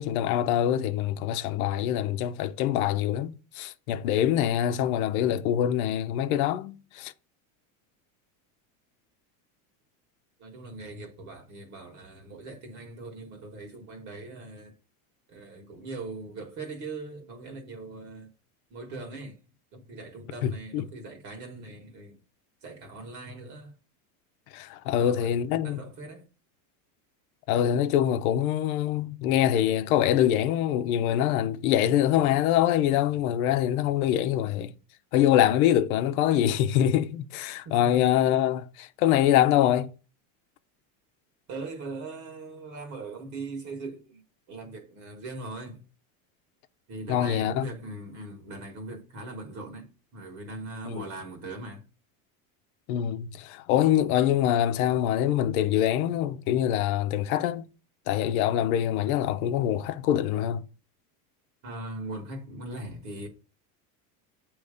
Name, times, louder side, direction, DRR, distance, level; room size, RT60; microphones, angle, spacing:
voice 1, 0.0-7.1 20.4-20.8 24.5-25.8 27.5-34.7 35.1-39.9 47.1-47.7 50.8-51.1 52.9-57.7 58.1-60.6, left 11 dB, 80° left, 0.8 m, -24 dB
voice 2, 10.4-14.7 15.3-18.3 18.7-19.4 19.7-22.2 22.6-23.7 24.9-26.2 37.7-38.2 41.5-44.2 44.5-45.8 46.9-51.8 61.6-63.3, right 2 dB, 40° right, 1.7 m, -40 dB
7.9 x 3.2 x 5.0 m
cardioid pair, 150°, 42 cm